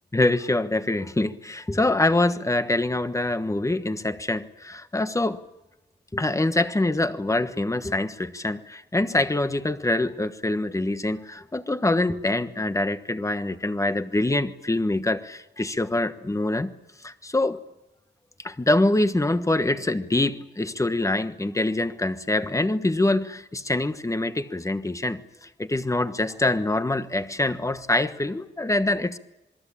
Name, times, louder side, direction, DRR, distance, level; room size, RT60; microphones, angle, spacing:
voice 1, 0.1-5.4 6.1-16.7 17.0-17.6 18.4-29.2, left 2 dB, 15° left, 10 dB, 1.3 m, -25 dB
27.0 x 21.5 x 8.7 m, 0.97 s
wide cardioid pair, 145°, 19 cm